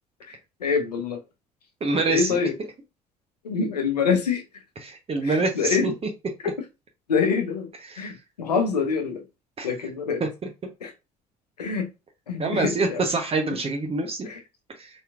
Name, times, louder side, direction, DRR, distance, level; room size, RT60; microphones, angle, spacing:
voice 1, 0.6-1.2 2.1-2.5 3.4-4.4 5.2-5.9 6.4-6.5 7.1-7.7 8.0-9.2 9.6-10.2 10.8-10.9 11.6-11.9 12.3-13.0 14.2-14.4, left 5 dB, 85° left, 0.7 m, -25 dB
voice 2, 1.8-2.4 4.8-5.9 7.8-8.1 9.6-9.7 10.2-10.3 10.6-10.7 12.4-14.3 14.8-14.9, right 3 dB, 30° right, 1.0 m, -26 dB
4.3 x 3.3 x 2.4 m
figure-of-eight pair, 55°, 20 cm